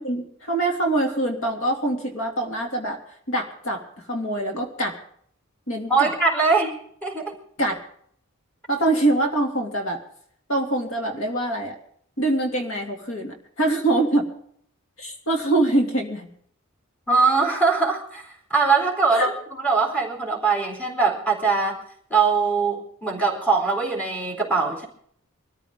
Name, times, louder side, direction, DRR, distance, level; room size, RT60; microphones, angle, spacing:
voice 1, 0.0-3.0 3.3-5.0 5.7-6.1 7.6-7.8 8.7-10.0 10.5-11.8 12.2-14.3 15.0-16.3 19.1-19.3, right 2 dB, 70° left, 3 dB, 2.8 m, -24 dB
voice 2, 5.9-6.8 7.0-7.3 17.1-21.8 22.1-24.9, right 4 dB, 5° left, -1 dB, 3.7 m, -22 dB
23.5 x 14.0 x 3.8 m, 0.63 s
head